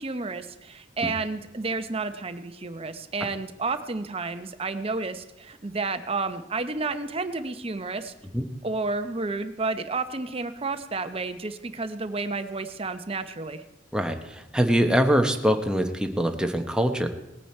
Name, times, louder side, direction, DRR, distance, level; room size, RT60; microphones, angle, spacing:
voice 1, 0.0-8.1 8.6-13.6, right 3 dB, 30° right, 9 dB, 0.8 m, -31 dB
voice 2, 13.9-17.1, equal, 5° right, 5 dB, 0.9 m, -23 dB
18.5 x 9.1 x 4.3 m, 0.95 s
head